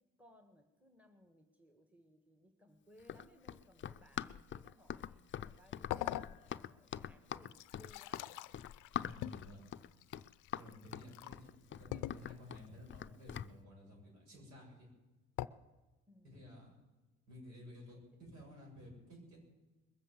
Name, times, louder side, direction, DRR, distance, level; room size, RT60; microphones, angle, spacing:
voice 1, 0.0-8.3 16.1-16.5 17.9-18.0, equal, 5° right, 6 dB, 1.7 m, -65 dB
Run, 3.0-13.5, left 9 dB, 40° left, 0.5 m, -44 dB
sound 1, 5.9-6.8 7.3-11.4 11.9-12.6 15.4-15.5, left 15 dB, 90° left, 0.5 m, -44 dB
voice 2, 9.0-9.6 10.5-14.9 16.2-16.7 17.3-19.4, left 1 dB, 75° right, -1 dB, 7.5 m, -54 dB
21.0 x 7.5 x 8.4 m, 1.2 s
cardioid pair, 90°, 30 cm